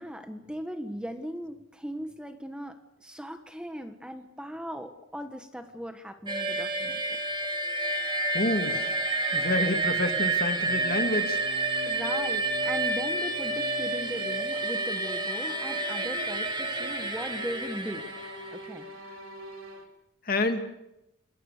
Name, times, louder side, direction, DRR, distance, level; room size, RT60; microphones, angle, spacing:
voice 1, 0.0-7.2 11.9-18.1 18.5-18.9, equal, 5° right, 6 dB, 1.4 m, -38 dB
sound 1, 6.3-18.7, right 2 dB, 25° right, 2.4 m, -29 dB
voice 2, 8.3-8.9 9.3-11.4 20.3-20.6, left 2 dB, 45° left, 6 dB, 2.3 m, -28 dB
sound 2, 10.6-19.8, left 1 dB, 90° right, 4.2 m, -43 dB
28.5 x 20.5 x 6.7 m, 0.88 s
head